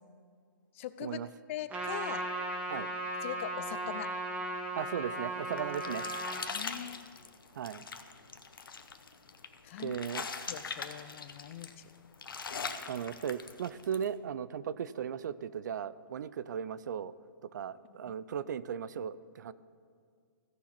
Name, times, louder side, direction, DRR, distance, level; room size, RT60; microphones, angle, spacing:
voice 1, 0.7-1.2 1.5-2.3 3.2-4.1 6.5-7.0 9.6-10.0 10.5-11.7 18.1-18.2, left 11 dB, 35° left, 14 dB, 0.5 m, -41 dB
Trumpet, 1.7-6.4, right 1 dB, 10° right, 1.2 m, -36 dB
voice 2, 4.8-6.1 7.6-7.8 9.8-10.3 12.9-17.1 17.5-19.5, right 8 dB, 55° right, 17 dB, 0.4 m, -37 dB
sound 1, 5.2-14.1, left 5 dB, 75° left, 0.9 m, -42 dB
16.0 x 5.7 x 4.3 m, 2.1 s
hypercardioid pair, 145°, 12 cm